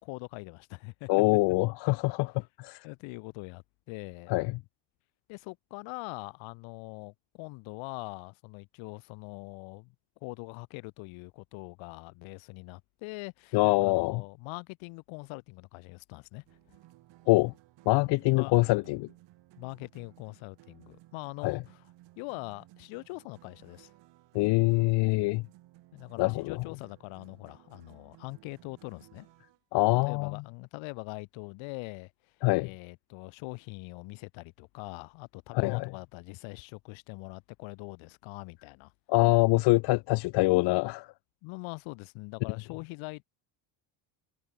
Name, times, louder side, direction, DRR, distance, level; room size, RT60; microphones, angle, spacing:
voice 1, 0.0-1.1 2.8-4.3 5.3-9.9 10.2-16.4 18.4-18.6 19.6-21.9 22.2-23.9 25.9-29.3 30.0-32.1 32.6-38.9 41.4-43.2, left 27 dB, 75° left, 2.4 m, -42 dB
voice 2, 1.1-2.9 4.3-4.6 13.5-14.2 17.3-17.5 17.9-19.1 21.4-21.6 24.3-25.4 26.2-26.6 29.7-30.4 32.4-32.7 35.6-35.9 39.1-41.1, left 23 dB, 60° left, 0.6 m, -24 dB
sound 1, 16.4-29.6, right 17 dB, 65° right, 7.1 m, -58 dB
cardioid pair, 115°, 47 cm